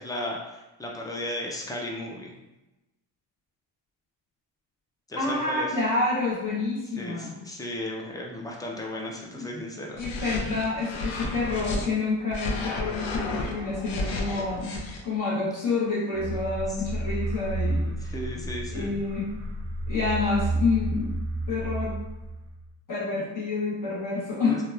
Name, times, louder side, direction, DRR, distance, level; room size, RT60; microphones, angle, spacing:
voice 1, 0.0-2.3 5.1-5.7 7.0-10.0 17.9-19.0 24.5-24.6, left 1 dB, 10° left, -1 dB, 0.3 m, -35 dB
voice 2, 5.2-7.4 9.4-9.5 10.0-17.9 18.7-19.4 19.9-21.2 21.5-22.0 22.9-24.6, left 3 dB, 40° left, -6 dB, 0.8 m, -28 dB
sound 1, 9.9-11.9 12.3-15.0, left 2 dB, 70° left, 0.6 m, -32 dB
sound 2, 16.1-22.7, right 1 dB, 90° right, 0.6 m, -31 dB
2.9 x 2.2 x 2.3 m, 1.0 s
cardioid pair, 90°, 48 cm